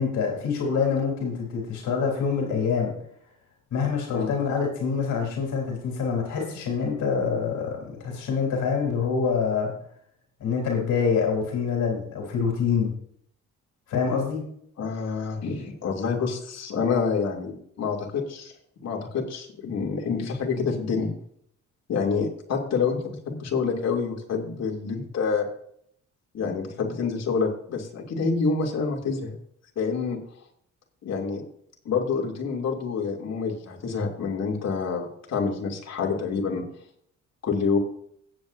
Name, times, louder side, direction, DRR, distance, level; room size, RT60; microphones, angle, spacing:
voice 1, 0.0-2.9 3.7-9.7 10.4-12.9 13.9-14.4, left 6 dB, 75° left, 1 dB, 3.6 m, -26 dB
voice 2, 14.8-18.5 18.8-21.1 21.9-25.5 26.3-29.3 29.8-30.2 31.0-31.4 31.8-36.6 37.4-37.8, left 5 dB, 60° left, 0 dB, 2.9 m, -27 dB
16.5 x 8.2 x 2.7 m, 0.66 s
cardioid pair, 90°, 30 cm